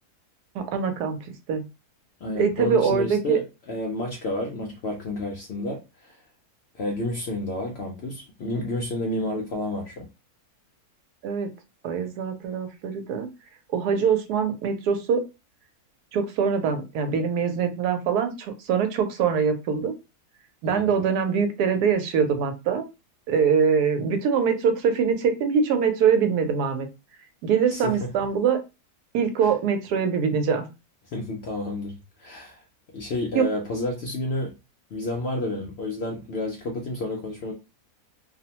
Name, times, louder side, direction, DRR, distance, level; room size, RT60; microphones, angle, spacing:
voice 1, 0.5-1.2 1.5-1.6 2.3-3.4 11.2-11.5 11.8-13.3 13.7-15.2 16.1-19.9 20.6-22.8 23.3-26.9 27.4-28.6 29.1-30.7 33.3-33.4, right 6 dB, 90° right, 1.1 m, -23 dB
voice 2, 2.2-3.4 3.7-6.2 6.7-10.1 20.7-20.8 27.7-28.2 29.4-29.5 31.1-32.6 32.9-34.5 34.9-37.5, left 1 dB, 70° left, 0.6 m, -30 dB
2.6 x 2.1 x 2.8 m
omnidirectional pair, 1.6 m